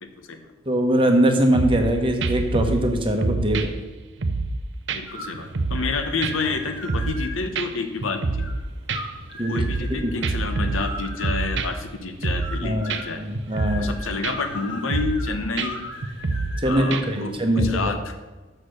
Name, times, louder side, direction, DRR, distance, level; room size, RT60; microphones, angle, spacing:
voice 1, 0.0-0.4 4.9-8.4 9.5-13.2 13.7-15.8 16.6-18.1, left 4 dB, 85° left, 7 dB, 1.0 m, -29 dB
voice 2, 0.7-3.7 9.4-9.6 9.9-10.1 12.6-13.9 16.6-18.0, right 1 dB, 25° right, 4 dB, 0.9 m, -22 dB
Hip-hop sex drum, 1.5-1.9 2.2-2.9 3.2-4.6 4.9-5.0 5.3-5.9 6.2-7.3 7.6-7.7 8.0-8.6 8.9-9.9 10.2-11.9 12.2-12.6 12.9-13.0 13.4-13.9 14.2-14.6 14.9-15.3 15.6-15.7 16.0-16.6 16.9-17.2 17.6-17.7, right 3 dB, 60° right, 0.6 m, -26 dB
sound 1, 5.1-17.7, left 1 dB, 65° left, 1.6 m, -39 dB
6.7 x 6.4 x 6.4 m, 1.2 s
head